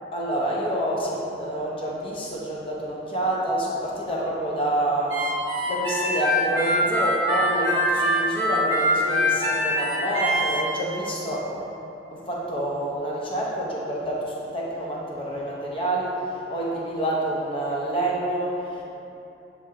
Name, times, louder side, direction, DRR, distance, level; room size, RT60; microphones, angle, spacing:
voice 1, 0.1-5.2 5.7-11.7 12.1-18.8, right 1 dB, 30° left, -5 dB, 0.8 m, -28 dB
Harmonica, 5.1-10.6, equal, 15° right, 1.4 m, -23 dB
8.1 x 3.5 x 3.7 m, 3.0 s
head